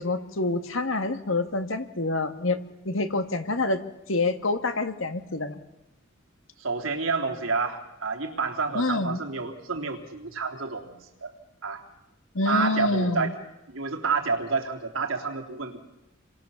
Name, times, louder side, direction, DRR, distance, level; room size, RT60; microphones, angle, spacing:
voice 1, 0.0-2.6 2.9-3.8 4.1-5.6 8.7-9.2 12.3-13.3, left 2 dB, 70° left, 8 dB, 1.9 m, -27 dB
voice 2, 6.6-10.9 11.2-11.3 11.6-11.8 12.5-13.3 13.7-15.8, right 4 dB, 80° right, 3 dB, 3.5 m, -29 dB
29.5 x 23.5 x 7.2 m, 0.95 s
head